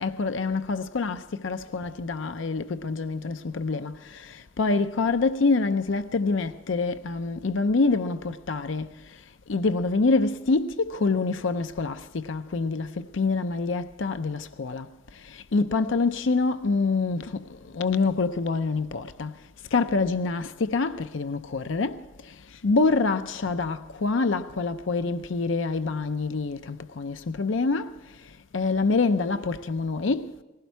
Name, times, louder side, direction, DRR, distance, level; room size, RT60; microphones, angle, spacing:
voice 1, 0.0-8.9 9.5-14.9 15.2-19.3 19.7-22.3 22.6-27.9 28.5-30.3, left 3 dB, 75° left, 0.6 m, -26 dB
19.5 x 16.0 x 4.6 m
head